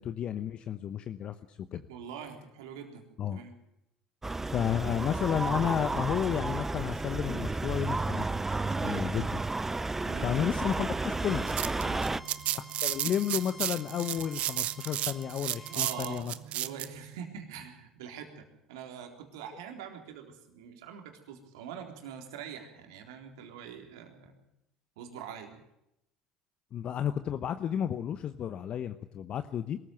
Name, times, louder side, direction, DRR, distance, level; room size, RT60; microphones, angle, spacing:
voice 1, 0.0-1.8 3.2-3.4 4.4-8.3 8.8-9.4 10.2-11.5 12.5-16.3 26.7-29.8, left 9 dB, 50° left, 11 dB, 1.0 m, -32 dB
voice 2, 1.9-3.0 3.3-3.5 8.7-9.0 10.0-10.3 11.8-12.1 15.7-24.4 25.0-25.6, right 7 dB, 80° right, 4 dB, 3.8 m, -44 dB
sound 1, 4.2-12.2, right 3 dB, 15° right, 0.8 m, -32 dB
Bowed string instrument, 11.1-16.3, equal, ahead, 1.2 m, -50 dB
sound 2, 11.2-16.9, right 13 dB, 55° right, 0.9 m, -33 dB
22.5 x 14.5 x 9.2 m, 0.84 s
hypercardioid pair, 70°, 2 cm